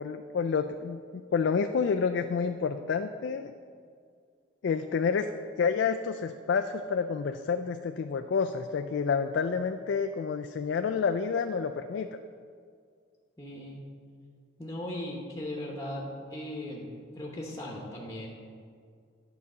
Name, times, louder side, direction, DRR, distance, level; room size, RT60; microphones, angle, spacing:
voice 1, 0.0-3.5 4.6-5.3 5.6-12.1, left 5 dB, 70° left, 6 dB, 0.3 m, -29 dB
voice 2, 13.4-13.8 14.6-16.9 17.1-18.3, left 1 dB, 15° left, -2 dB, 0.9 m, -38 dB
9.6 x 4.1 x 6.5 m, 2.1 s
head